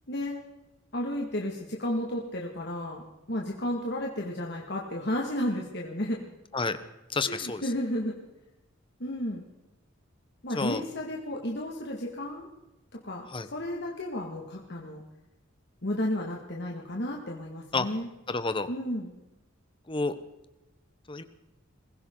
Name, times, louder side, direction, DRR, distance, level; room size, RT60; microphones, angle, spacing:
voice 1, 0.1-0.4 0.9-3.0 3.3-6.2 7.2-8.2 9.0-9.4 10.4-12.5 12.9-15.0 15.8-18.1 18.7-19.1, left 1 dB, 55° left, -1 dB, 2.1 m, -32 dB
voice 2, 7.1-7.6 10.5-10.8 13.3-13.5 17.7-17.9 18.3-18.7 19.9-20.1 21.1-21.2, left 3 dB, 25° left, 11 dB, 1.0 m, -29 dB
23.0 x 15.5 x 3.9 m, 0.98 s
head